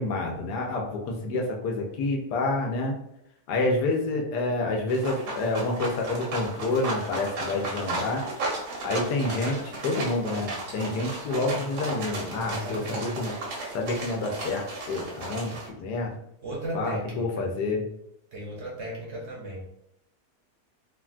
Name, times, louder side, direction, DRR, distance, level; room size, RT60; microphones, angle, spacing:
voice 1, 0.0-3.0 3.5-8.2 8.8-13.3 13.7-16.1 16.7-17.8, left 2 dB, 85° left, 1 dB, 1.2 m, -28 dB
sound 1, 4.9-15.7, right 2 dB, 80° right, 1.5 m, -34 dB
voice 2, 12.4-13.2 16.4-17.5 18.3-19.6, right 1 dB, 60° right, -4 dB, 0.8 m, -36 dB
3.4 x 2.2 x 2.4 m, 0.77 s
omnidirectional pair, 1.7 m